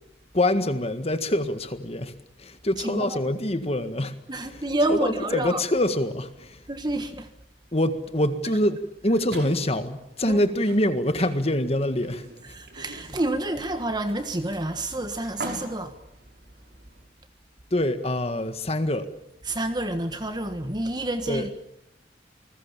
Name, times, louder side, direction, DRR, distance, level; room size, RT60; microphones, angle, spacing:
voice 1, 0.3-4.2 4.5-4.6 4.9-6.7 7.7-12.3 17.7-19.1 21.3-21.5, left 1 dB, 35° left, 1.7 m, -25 dB
voice 2, 2.8-3.2 4.3-5.6 6.7-7.3 10.2-10.4 12.5-16.0 19.4-21.5, right 1 dB, 25° right, 1.5 m, -28 dB
sound 1, 9.3-17.1, right 2 dB, 60° right, 5.8 m, -43 dB
29.0 x 20.5 x 7.4 m
head